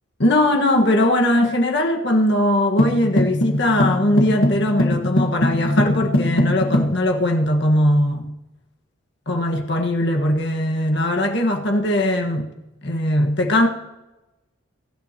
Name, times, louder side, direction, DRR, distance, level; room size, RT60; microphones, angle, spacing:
voice 1, 0.2-8.3 9.3-12.5 12.8-13.7, left 1 dB, 55° left, 1.6 m, -20 dB
sound 1, 2.8-7.0, left 1 dB, 85° left, 1.5 m, -21 dB
22.5 x 11.0 x 3.0 m
head